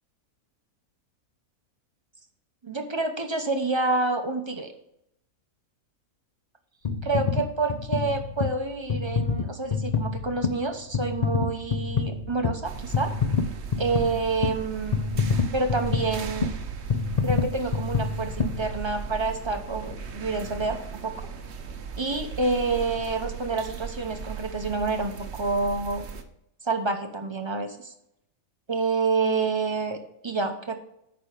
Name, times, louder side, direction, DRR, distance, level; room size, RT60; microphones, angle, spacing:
voice 1, 2.6-4.7 7.0-13.1 13.8-16.5 17.2-21.3 22.0-26.0 26.6-27.9 28.7-30.8, right 3 dB, 25° right, 5 dB, 0.7 m, -28 dB
sound 1, 6.9-19.3 19.8-19.9, left 5 dB, 70° left, 0.3 m, -28 dB
sound 2, 12.6-26.2, right 6 dB, 50° right, 1.0 m, -38 dB
8.8 x 5.3 x 5.1 m, 0.78 s
omnidirectional pair, 1.6 m